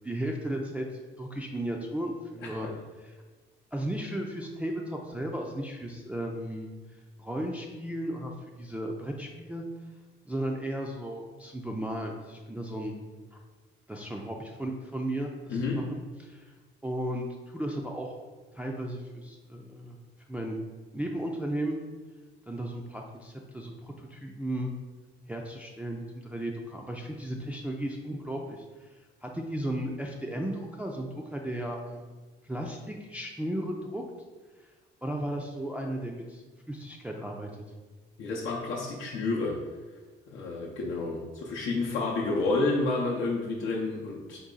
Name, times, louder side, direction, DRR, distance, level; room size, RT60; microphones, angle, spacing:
voice 1, 0.0-2.7 3.0-3.1 3.7-8.3 8.6-9.6 10.3-13.0 13.3-13.4 13.9-16.0 16.3-16.5 16.8-18.1 18.5-20.0 20.3-20.6 20.9-21.8 22.5-24.7 25.3-28.9 29.2-32.1 32.4-34.0 34.6-34.7 35.0-37.5, right 1 dB, 5° right, 0 dB, 0.3 m, -35 dB
voice 2, 15.5-15.8 38.2-39.6 40.3-44.4, left 3 dB, 80° left, -4 dB, 0.6 m, -30 dB
3.9 x 2.3 x 3.7 m, 1.3 s
cardioid pair, 90°, 20 cm